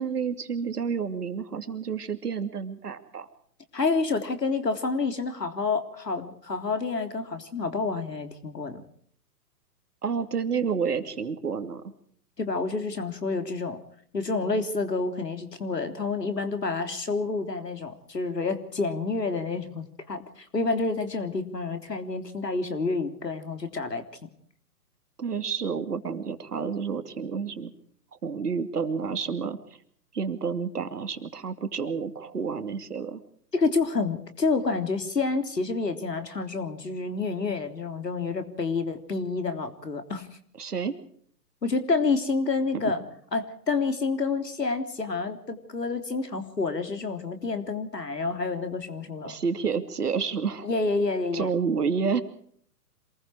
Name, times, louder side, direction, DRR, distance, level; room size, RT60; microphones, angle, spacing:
voice 1, 0.0-3.3 10.0-11.9 25.2-27.7 28.2-29.6 30.1-33.2 40.6-41.0 42.7-42.9 49.2-50.7 51.3-52.2, right 6 dB, 70° right, 8 dB, 2.7 m, -29 dB
voice 2, 3.7-8.8 12.4-13.8 14.1-24.0 33.5-40.3 41.6-43.0 43.3-49.4 50.6-51.5, left 4 dB, 80° left, 7 dB, 3.6 m, -28 dB
27.0 x 20.5 x 4.9 m, 0.62 s
figure-of-eight pair, 130°, 48 cm